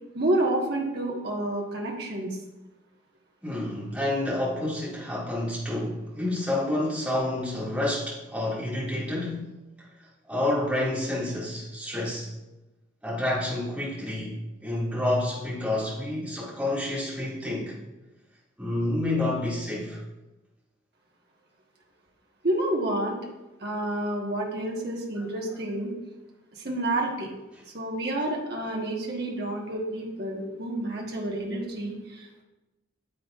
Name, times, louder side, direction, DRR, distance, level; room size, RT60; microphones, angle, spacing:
voice 1, 0.1-2.4 22.4-23.2 23.6-25.9 26.5-27.3 27.7-32.3, right 1 dB, 55° right, -1 dB, 1.4 m, -29 dB
voice 2, 3.4-9.5 10.3-12.3 13.0-17.8 18.6-20.0, left 1 dB, 5° right, -7 dB, 2.2 m, -29 dB
9.3 x 7.9 x 2.5 m, 1.0 s
head